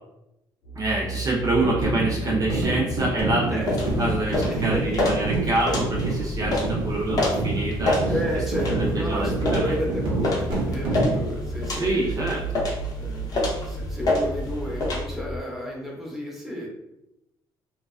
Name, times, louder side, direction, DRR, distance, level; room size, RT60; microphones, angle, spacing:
sound 1, 0.6-15.4, right 1 dB, 80° left, 0.6 m, -34 dB
voice 1, 0.8-3.6 4.0-8.1 8.7-9.7 11.8-12.6, right 2 dB, 40° right, -3 dB, 0.5 m, -26 dB
sound 2, 1.6-11.3, right 2 dB, 80° right, 0.9 m, -28 dB
sound 3, 3.6-15.0, left 1 dB, 45° left, 0.7 m, -29 dB
voice 2, 4.5-4.8 8.1-12.4 13.0-16.7, left 1 dB, 5° right, -3 dB, 0.8 m, -32 dB
2.3 x 2.2 x 2.3 m, 0.88 s
cardioid pair, 95°, 9 cm